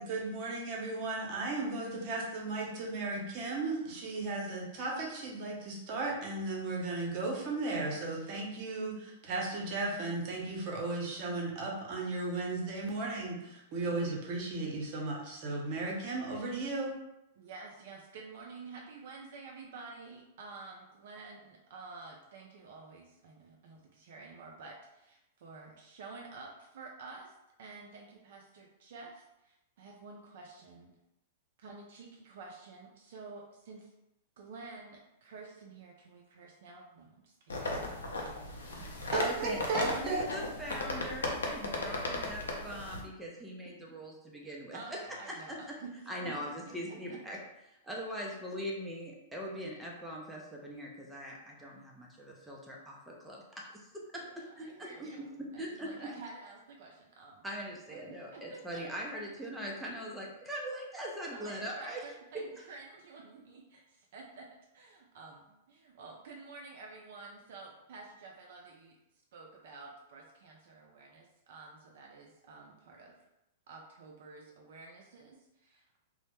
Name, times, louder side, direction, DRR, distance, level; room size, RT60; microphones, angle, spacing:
voice 1, 0.0-16.9 39.1-40.2, right 3 dB, 45° right, -2 dB, 0.7 m, -35 dB
voice 2, 17.4-27.3 27.6-30.9 31.6-33.9 34.4-37.8 38.2-38.3 41.5-41.6 44.7-46.3 46.7-47.2 54.2-57.4 57.9-59.5 61.3-64.5 64.7-69.0 69.3-73.1 73.7-76.0, right 4 dB, 65° right, 0 dB, 0.4 m, -50 dB
sound 1, 37.5-43.0, left 2 dB, 80° left, 0.5 m, -36 dB
voice 3, 39.1-45.6 46.1-47.4 47.7-53.9 54.1-55.1 55.4-56.1 57.4-62.0, equal, 5° right, -3 dB, 0.5 m, -41 dB
2.0 x 2.0 x 3.0 m, 0.88 s
hypercardioid pair, 110°, 0 cm